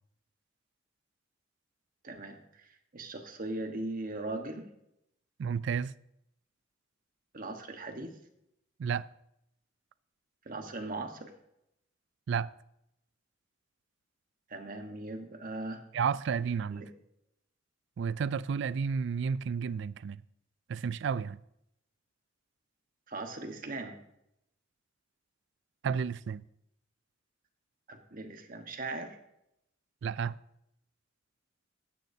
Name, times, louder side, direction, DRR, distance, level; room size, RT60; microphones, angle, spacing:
voice 1, 2.0-4.7 7.3-8.2 10.4-11.3 14.5-15.8 16.7-16.9 23.1-24.0 27.9-29.2, right 2 dB, 45° right, 1.3 m, -39 dB
voice 2, 5.4-5.9 8.8-9.1 12.3-12.5 15.9-16.8 18.0-20.2 20.7-21.4 25.8-26.4 30.0-30.4, right 6 dB, 65° right, 0.3 m, -31 dB
15.0 x 10.5 x 2.8 m
head